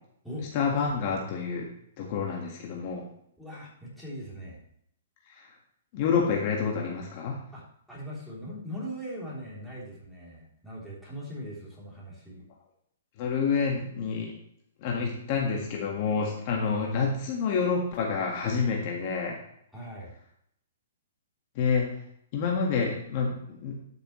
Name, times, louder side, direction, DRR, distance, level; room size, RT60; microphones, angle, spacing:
voice 1, 0.5-1.7 2.0-3.0 5.9-7.4 13.2-14.3 14.8-19.4 21.6-21.9 22.3-23.4 23.6-23.7, left 5 dB, 40° left, -1 dB, 1.8 m, -28 dB
voice 2, 3.4-4.6 7.5-12.5 19.7-20.1, equal, ahead, -8 dB, 3.4 m, -40 dB
12.5 x 6.7 x 3.2 m, 0.71 s
hypercardioid pair, 150°, 0 cm